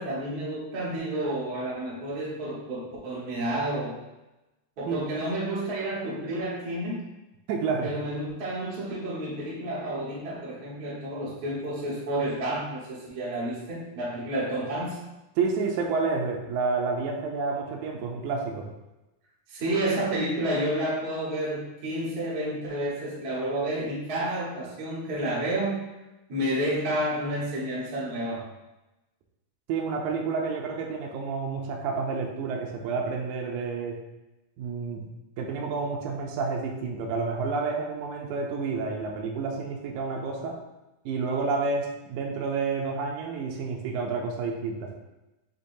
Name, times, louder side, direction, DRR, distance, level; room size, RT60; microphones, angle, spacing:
voice 1, 0.0-3.9 4.8-7.1 7.8-15.0 19.5-25.8 26.3-28.5, right 1 dB, 50° right, -7 dB, 1.1 m, -30 dB
voice 2, 7.5-7.9 15.4-18.7 29.7-34.0 34.6-35.0 35.4-40.6 41.1-44.9, right 4 dB, 80° right, 0 dB, 1.9 m, -29 dB
6.5 x 3.0 x 2.6 m, 0.99 s
omnidirectional pair, 3.6 m